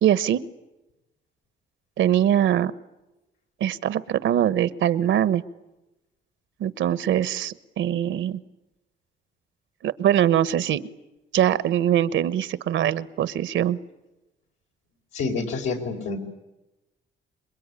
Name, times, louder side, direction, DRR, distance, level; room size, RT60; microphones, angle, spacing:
voice 1, 0.0-0.4 2.0-2.7 3.6-5.4 6.6-8.4 9.8-10.8 11.3-13.8, right 10 dB, 75° right, 15 dB, 1.1 m, -22 dB
voice 2, 15.1-16.2, left 4 dB, 85° left, 1 dB, 5.1 m, -28 dB
27.5 x 22.5 x 9.9 m, 1.0 s
cardioid pair, 90°, 20 cm